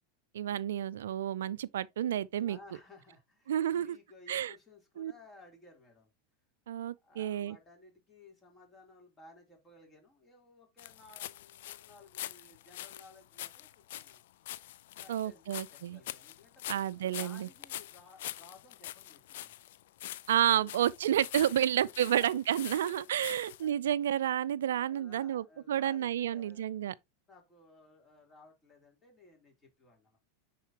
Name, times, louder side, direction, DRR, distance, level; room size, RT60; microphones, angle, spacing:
voice 1, 0.3-2.6 3.5-4.0 4.3-4.5 5.0-5.1 6.7-7.6 15.1-16.0 16.7-17.5 20.3-26.9, right 11 dB, 75° right, 0.4 m, -30 dB
voice 2, 2.5-6.1 7.0-14.2 15.0-19.6 20.6-20.8 21.4-22.8 23.3-23.4 24.8-26.7 27.3-30.2, left 3 dB, 20° left, 3.6 m, -58 dB
sound 1, 10.8-23.7, left 14 dB, 65° left, 0.4 m, -45 dB
9.8 x 4.2 x 2.9 m
hypercardioid pair, 95°, 0 cm